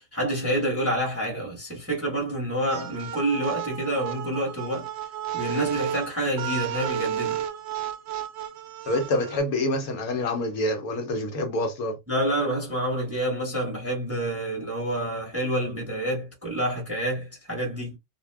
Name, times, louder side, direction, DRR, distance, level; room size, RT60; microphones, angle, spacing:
voice 1, 0.0-4.9 5.3-7.4 12.1-18.0, right 1 dB, 10° right, 1.0 m, -28 dB
sound 1, 2.7-9.4, right 9 dB, 85° right, 0.5 m, -32 dB
voice 2, 8.9-12.0, left 1 dB, 70° left, 1.2 m, -26 dB
2.6 x 2.2 x 3.3 m
omnidirectional pair, 1.7 m